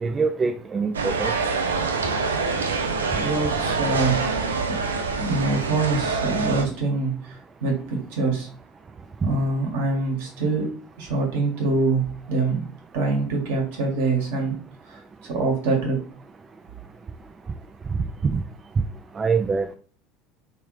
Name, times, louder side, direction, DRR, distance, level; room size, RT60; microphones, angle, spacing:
voice 1, 0.0-1.3 9.2-9.3 17.9-18.0 19.2-19.8, right 5 dB, 30° right, 6 dB, 0.4 m, -24 dB
sound 1, 0.9-6.6, right 4 dB, 80° right, 0.5 m, -25 dB
voice 2, 3.1-4.6 5.2-8.5 9.2-10.7 11.0-12.6 12.9-14.6 14.9-16.0, right 3 dB, 65° right, 0 dB, 1.5 m, -25 dB
3.4 x 3.2 x 3.2 m, 0.43 s
figure-of-eight pair, 70°, 0 cm